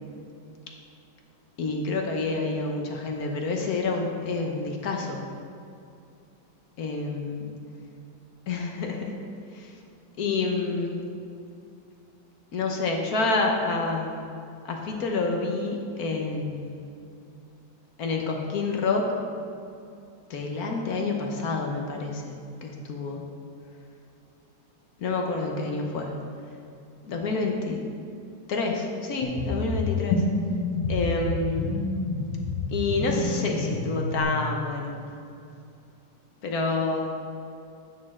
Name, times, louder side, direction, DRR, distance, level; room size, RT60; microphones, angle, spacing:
voice 1, 1.6-5.2 6.8-7.5 8.5-9.1 9.5-9.7 10.2-11.0 12.5-14.1 14.6-16.7 18.0-19.1 20.3-23.2 25.0-26.1 27.0-27.8 28.5-30.2 30.9-31.7 32.7-34.9 36.4-37.1, left 3 dB, 60° left, 1 dB, 1.3 m, -28 dB
sound 1, 29.2-34.2, left 3 dB, 85° left, 1.6 m, -28 dB
9.7 x 6.6 x 3.6 m, 2.6 s
omnidirectional pair, 2.0 m